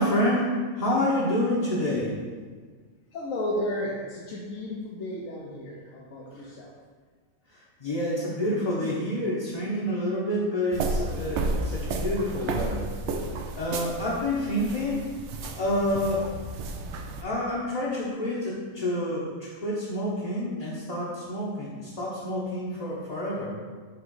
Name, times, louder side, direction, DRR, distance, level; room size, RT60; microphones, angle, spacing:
voice 1, 0.0-2.2 7.8-12.9 13.5-15.1 15.6-16.3 17.2-23.6, left 1 dB, 35° left, -8 dB, 0.8 m, -28 dB
voice 2, 3.1-6.7, left 1 dB, 75° left, -4 dB, 1.2 m, -33 dB
sound 1, 10.7-17.2, right 2 dB, 65° right, 0.8 m, -32 dB
5.8 x 3.1 x 5.4 m, 1.5 s
omnidirectional pair, 1.4 m